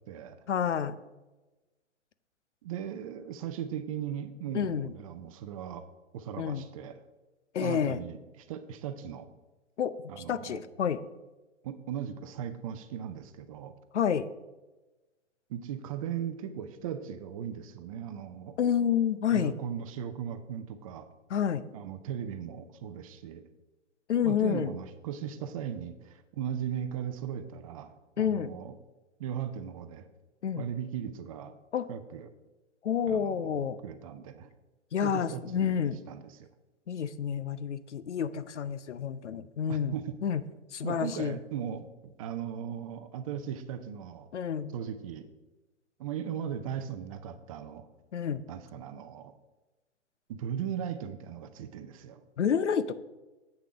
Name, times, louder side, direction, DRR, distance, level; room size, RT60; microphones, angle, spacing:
voice 1, 0.5-1.0 4.5-4.9 6.4-6.6 7.5-8.0 9.8-9.9 10.3-11.0 13.9-14.3 18.6-19.5 21.3-21.6 24.1-24.7 28.2-28.5 30.4-30.7 31.7-31.8 32.8-33.8 34.9-36.0 36.9-39.9 40.2-40.4 40.7-41.4 44.3-44.7 48.1-48.4 52.4-52.9, left 8 dB, 70° left, 14 dB, 0.7 m, -29 dB
voice 2, 2.6-5.9 6.1-7.0 7.6-9.3 10.1-10.6 11.6-13.8 15.5-18.6 19.3-21.1 21.7-23.4 24.2-28.8 29.2-30.1 30.6-31.5 31.9-32.3 33.1-34.5 35.0-36.5 39.7-40.2 40.8-44.3 44.7-45.3 46.0-47.9 48.5-49.3 50.3-52.2, right 9 dB, 30° right, 10 dB, 0.5 m, -38 dB
8.2 x 6.6 x 5.0 m, 1.1 s
figure-of-eight pair, 120°, 36 cm